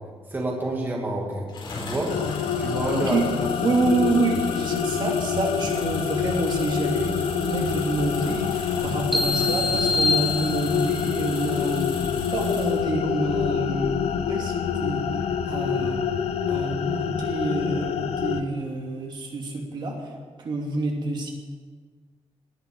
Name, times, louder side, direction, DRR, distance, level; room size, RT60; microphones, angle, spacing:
voice 1, 0.3-2.1 2.6-3.2, right 1 dB, 20° right, -2 dB, 2.6 m, -28 dB
sound 1, 1.5-12.9, left 3 dB, 50° left, 4.9 m, -38 dB
sound 2, 2.1-18.4, left 8 dB, 85° left, 0.9 m, -27 dB
voice 2, 2.9-3.2 3.6-11.9 12.3-14.0 14.3-15.0 15.4-16.0 16.5-20.1 20.4-21.3, right 2 dB, 45° right, 0 dB, 2.8 m, -27 dB
sound 3, 9.1-11.1, left 3 dB, ahead, 1.1 m, -25 dB
19.5 x 8.1 x 9.1 m, 1.5 s
wide cardioid pair, 170°, 10 cm